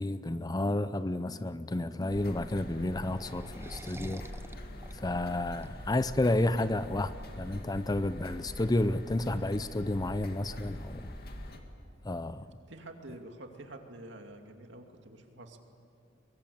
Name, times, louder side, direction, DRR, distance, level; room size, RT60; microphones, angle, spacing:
voice 1, 0.0-4.2 4.9-11.1 12.0-12.5, left 1 dB, 20° left, 0.6 m, -31 dB
sound 1, 2.1-11.6, equal, 55° left, 2.2 m, -44 dB
sound 2, 2.1-7.3, right 1 dB, 15° right, 0.8 m, -50 dB
voice 2, 12.7-15.6, right 1 dB, 70° right, 2.5 m, -48 dB
23.5 x 22.0 x 8.7 m
head